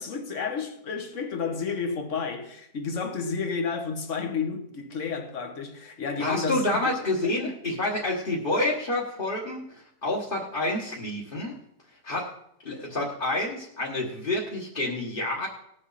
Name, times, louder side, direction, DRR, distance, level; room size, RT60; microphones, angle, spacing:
voice 1, 0.0-7.0 7.2-7.6, left 5 dB, 50° left, 1.5 m, -31 dB
voice 2, 6.2-9.6 10.0-11.5 12.0-12.3 12.6-15.5, left 1 dB, 35° left, 1.7 m, -28 dB
19.0 x 7.4 x 4.1 m
omnidirectional pair, 1.7 m